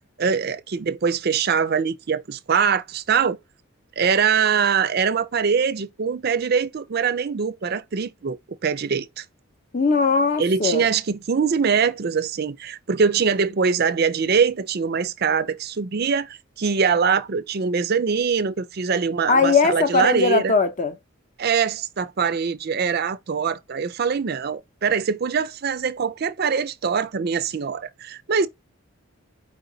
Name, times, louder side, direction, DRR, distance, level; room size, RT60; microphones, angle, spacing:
voice 1, 0.2-3.4 4.0-9.2 10.4-20.5 21.4-28.5, right 6 dB, 45° right, 0.5 m, -23 dB
voice 2, 9.7-10.9 19.3-20.9, left 4 dB, 35° left, 0.6 m, -19 dB
4.6 x 3.9 x 2.7 m
head